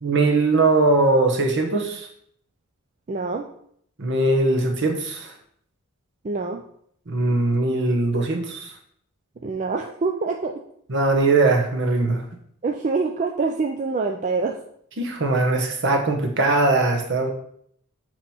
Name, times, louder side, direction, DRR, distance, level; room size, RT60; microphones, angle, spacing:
voice 1, 0.0-2.1 4.0-5.3 7.1-8.7 10.9-12.2 15.0-17.3, right 2 dB, 55° right, 4 dB, 1.0 m, -20 dB
voice 2, 3.1-3.5 6.2-6.6 9.4-10.6 12.6-14.6, right 4 dB, 35° right, 2 dB, 0.4 m, -25 dB
7.3 x 3.0 x 4.3 m, 0.66 s
head